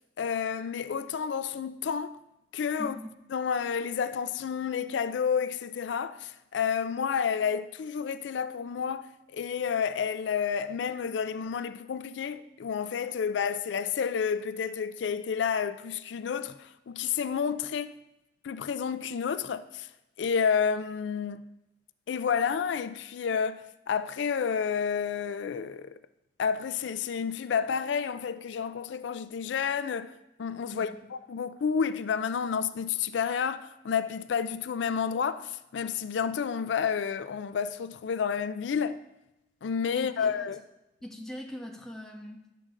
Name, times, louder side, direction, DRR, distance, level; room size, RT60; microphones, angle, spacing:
voice 1, 0.2-2.2 2.5-3.0 3.3-18.0 18.4-19.9 20.2-21.4 22.1-25.9 26.4-39.0 39.6-40.6, left 6 dB, 85° left, 0.4 m, -30 dB
voice 2, 2.8-3.1 30.7-31.1 39.9-40.5 41.0-42.5, left 1 dB, 5° left, 1.1 m, -42 dB
11.0 x 7.6 x 3.7 m
head